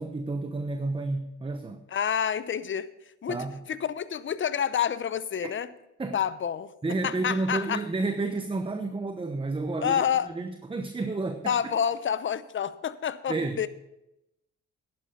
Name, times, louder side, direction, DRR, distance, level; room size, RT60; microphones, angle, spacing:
voice 1, 0.0-1.8 3.3-3.6 5.4-5.5 6.0-6.2 6.8-11.7 13.3-13.7, right 3 dB, 15° right, 7 dB, 0.9 m, -31 dB
voice 2, 1.9-2.9 3.2-3.4 3.7-5.7 6.1-6.7 7.0-7.8 9.8-10.3 11.4-13.7, left 8 dB, 40° left, 15 dB, 0.7 m, -28 dB
11.0 x 10.5 x 5.2 m, 0.88 s
cardioid pair, 90°, 30 cm